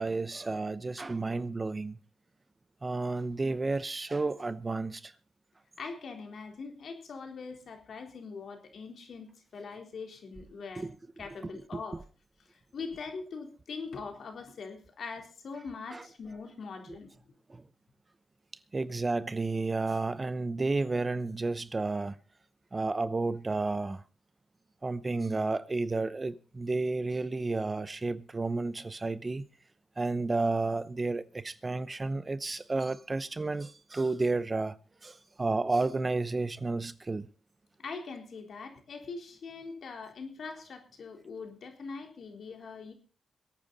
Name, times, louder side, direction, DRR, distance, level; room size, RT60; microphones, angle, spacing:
voice 1, 0.0-2.0 2.8-5.1 10.8-10.9 11.5-11.8 15.9-16.0 17.5-17.6 18.7-22.2 22.7-24.0 24.8-29.4 30.0-34.7 35.0-37.3, right 3 dB, 30° right, 0.9 m, -31 dB
voice 2, 5.8-10.9 11.2-12.0 12.7-17.1 37.8-42.9, left 4 dB, 65° left, 3.8 m, -42 dB
22.5 x 8.9 x 4.1 m
cardioid pair, 70°, 0 cm